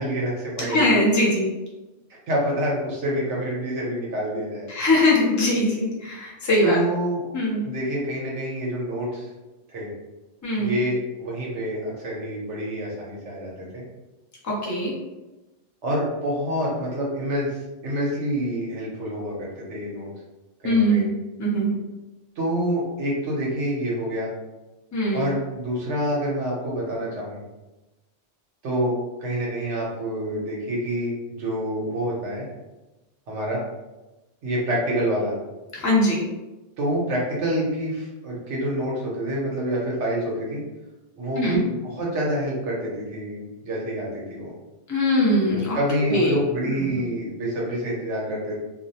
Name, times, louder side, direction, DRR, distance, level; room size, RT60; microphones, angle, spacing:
voice 1, 0.0-1.0 2.3-4.7 6.6-7.2 7.6-9.3 9.7-9.9 10.6-13.8 15.8-17.5 17.8-20.1 20.6-21.1 22.4-24.3 25.1-27.4 28.6-32.4 33.3-33.6 34.4-35.3 36.8-40.6 41.2-44.5 45.5-48.6, right 1 dB, 75° right, -4 dB, 1.1 m, -27 dB
voice 2, 0.7-1.5 4.7-6.8 7.3-7.6 10.4-10.8 14.4-14.9 20.6-21.1 21.4-21.8 24.9-25.2 35.7-36.2 41.4-41.6 44.9-45.8 46.1-46.3 46.8-47.0, left 1 dB, 25° left, -3 dB, 0.4 m, -21 dB
2.7 x 2.0 x 2.7 m, 1.1 s
omnidirectional pair, 1.2 m